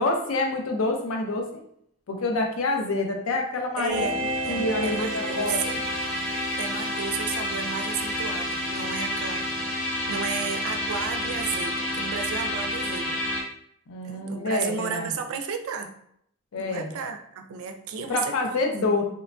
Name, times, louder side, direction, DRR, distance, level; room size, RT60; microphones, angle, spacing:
voice 1, 0.0-1.5 2.1-4.1 4.5-5.6 13.9-15.1 16.5-16.9 18.1-19.0, left 2 dB, 80° left, 2 dB, 0.5 m, -27 dB
voice 2, 3.8-5.8 6.6-9.7 10.1-13.2 14.0-15.9 16.6-18.7, right 6 dB, 80° right, 7 dB, 0.3 m, -33 dB
sound 1, 3.9-13.4, left 1 dB, 5° left, 0.5 m, -29 dB
3.0 x 2.2 x 2.4 m, 0.69 s
head